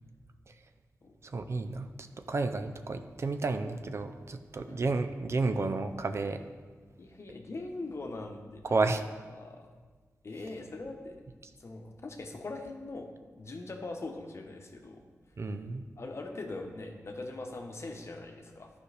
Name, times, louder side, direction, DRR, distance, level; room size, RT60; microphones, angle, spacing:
voice 1, 1.2-1.9 2.3-6.4 8.6-9.0 15.4-15.8, right 3 dB, 50° right, 8 dB, 0.5 m, -31 dB
voice 2, 7.0-8.7 9.3-9.6 10.2-11.2 11.6-13.1 13.4-15.0 15.4-15.5 16.0-18.7, left 2 dB, 55° left, 3 dB, 0.9 m, -41 dB
11.5 x 5.0 x 3.3 m, 1.5 s
wide cardioid pair, 75°, 6 cm